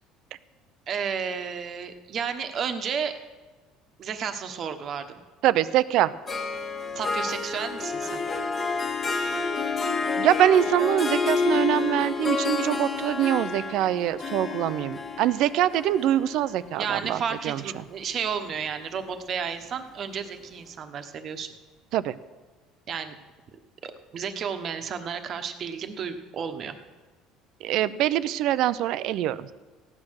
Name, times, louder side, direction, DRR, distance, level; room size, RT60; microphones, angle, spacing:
voice 1, 0.9-3.1 4.0-5.2 6.9-8.2 16.7-21.5 22.9-23.1 23.8-26.7, right 7 dB, 40° right, 8 dB, 1.2 m, -32 dB
voice 2, 5.4-6.1 10.2-17.2 17.4-17.6 21.9-22.1 27.6-29.5, right 12 dB, 60° right, 16 dB, 0.6 m, -24 dB
Harp, 6.3-17.7, left 4 dB, 25° left, 1.5 m, -29 dB
16.0 x 9.8 x 6.4 m, 1.3 s
cardioid pair, 145°, 0 cm